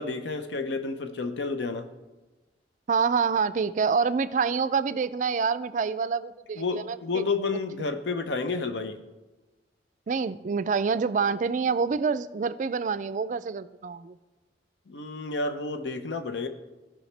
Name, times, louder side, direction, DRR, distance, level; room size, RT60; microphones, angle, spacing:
voice 1, 0.0-1.9 6.6-9.0 14.9-16.5, left 3 dB, 85° left, 8 dB, 0.6 m, -30 dB
voice 2, 2.9-7.2 7.5-7.6 10.1-14.2, right 5 dB, 45° right, 14 dB, 0.3 m, -27 dB
16.5 x 5.6 x 3.3 m, 1.2 s
head